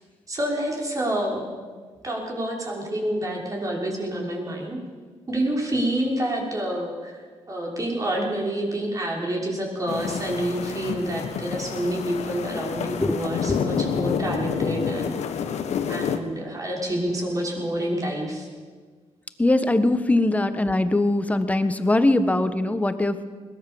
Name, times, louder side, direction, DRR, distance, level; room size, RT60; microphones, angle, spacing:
voice 1, 0.3-1.5 2.0-4.8 5.3-7.2 7.5-15.2 15.9-18.5, right 1 dB, 30° right, -1 dB, 5.8 m, -28 dB
sound 1, 9.9-16.2, left 7 dB, 75° left, 1.7 m, -28 dB
voice 2, 19.4-23.2, left 2 dB, 10° left, 10 dB, 1.4 m, -21 dB
22.0 x 19.0 x 7.2 m, 1.5 s
cardioid pair, 105°, 12 cm